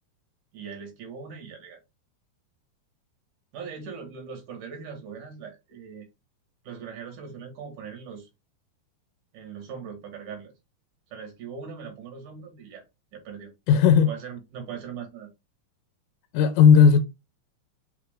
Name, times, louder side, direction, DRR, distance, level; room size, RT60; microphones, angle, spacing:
voice 1, 0.5-1.8 3.5-6.1 6.6-8.3 9.3-10.5 11.1-12.8 13.1-13.8 14.1-15.3, right 6 dB, 70° right, 2.7 m, -40 dB
voice 2, 13.7-14.1 16.3-17.0, left 6 dB, 80° left, 1.9 m, -15 dB
5.9 x 2.5 x 3.3 m
omnidirectional pair, 3.9 m